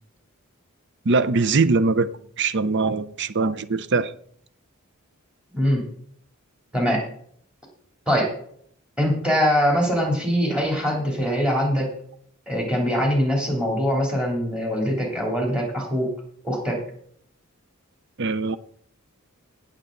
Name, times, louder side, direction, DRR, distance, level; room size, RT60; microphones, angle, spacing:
voice 1, 1.0-2.1 2.4-4.1 18.2-18.6, right 4 dB, 55° right, 0.6 m, -21 dB
voice 2, 5.5-5.8 6.7-7.0 8.1-8.3 9.0-11.9 12.5-16.1 16.4-16.8, equal, 5° right, 3.2 m, -22 dB
18.0 x 6.9 x 3.9 m
head